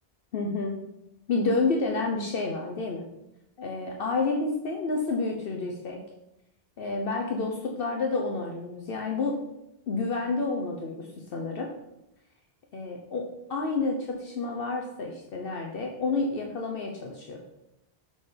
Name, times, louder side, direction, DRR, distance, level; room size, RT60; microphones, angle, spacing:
voice 1, 0.3-0.8 1.3-3.0 3.6-6.0 6.8-9.4 9.9-11.7 12.7-17.4, left 3 dB, 65° left, 1 dB, 0.9 m, -29 dB
6.2 x 3.9 x 5.0 m, 0.87 s
omnidirectional pair, 1.1 m